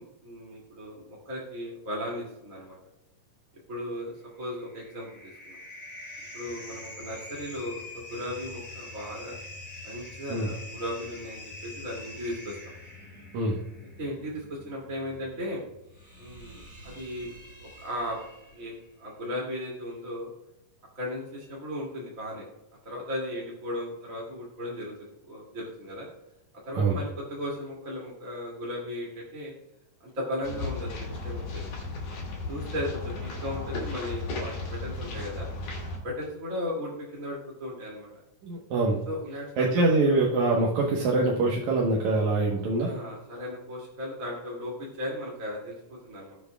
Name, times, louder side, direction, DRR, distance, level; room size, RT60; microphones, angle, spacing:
voice 1, 0.0-2.8 3.7-5.6 6.3-9.3 9.8-12.6 14.0-15.6 16.2-17.4 17.8-18.2 18.5-18.7 19.0-20.3 20.9-22.4 22.8-24.9 25.3-26.1 26.7-29.5 30.0-31.6 32.5-35.5 36.0-38.1 39.1-40.3 42.8-46.3, left 1 dB, 25° right, -5 dB, 2.4 m, -36 dB
sound 1, 4.3-18.9, left 2 dB, 5° left, 4.1 m, -45 dB
sound 2, 30.4-36.0, left 3 dB, 75° left, 4.4 m, -35 dB
voice 2, 38.4-39.0 39.6-42.9, right 2 dB, 65° right, -3 dB, 2.5 m, -24 dB
19.5 x 7.9 x 2.3 m, 0.87 s
omnidirectional pair, 3.8 m